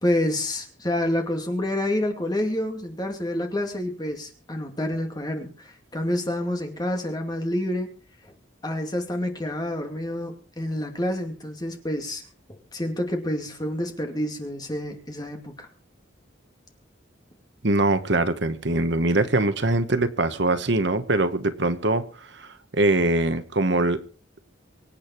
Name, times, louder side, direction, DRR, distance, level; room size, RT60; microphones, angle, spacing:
voice 1, 0.0-7.9 8.6-12.2 12.7-15.7, left 1 dB, 20° left, 2.4 m, -28 dB
voice 2, 17.6-24.0, right 2 dB, 60° right, 1.2 m, -23 dB
25.0 x 8.7 x 4.5 m
head